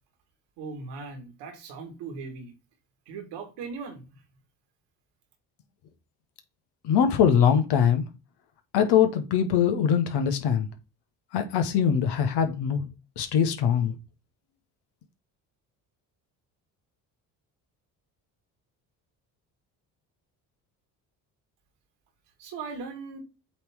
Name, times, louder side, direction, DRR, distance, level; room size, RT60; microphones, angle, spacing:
voice 1, 0.6-2.5 3.1-4.0 22.4-23.2, right 4 dB, 75° right, 2.0 m, -38 dB
voice 2, 6.8-8.1 8.7-10.7 11.3-12.9 13.2-14.0, left 8 dB, 70° left, 1.2 m, -22 dB
8.1 x 3.3 x 3.5 m
hypercardioid pair, 60°, 42 cm